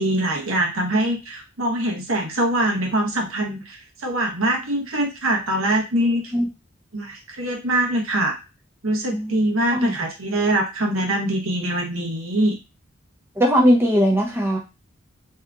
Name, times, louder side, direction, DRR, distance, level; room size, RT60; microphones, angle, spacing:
voice 1, 0.0-6.2 6.9-8.4 8.8-12.6, right 1 dB, 75° right, 1 dB, 1.0 m, -23 dB
voice 2, 9.1-9.4 9.7-10.0 13.4-14.6, equal, 10° right, -1 dB, 0.5 m, -19 dB
2.8 x 2.4 x 3.4 m, 0.27 s
head